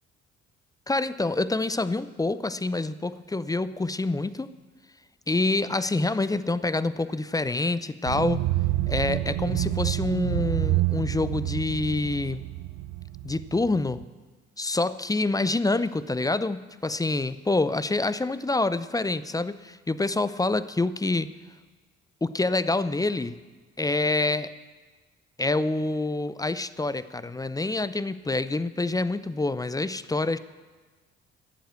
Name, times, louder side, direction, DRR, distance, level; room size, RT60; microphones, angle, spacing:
voice 1, 0.9-4.5 5.3-8.4 8.9-12.4 13.2-14.0 14.6-21.3 22.2-23.4 23.8-24.5 25.4-30.4, left 2 dB, 10° left, 15 dB, 0.5 m, -27 dB
sound 1, 8.1-14.0, right 15 dB, 55° right, 0.6 m, -28 dB
12.5 x 7.9 x 8.2 m, 1.3 s
figure-of-eight pair, 40°, 35 cm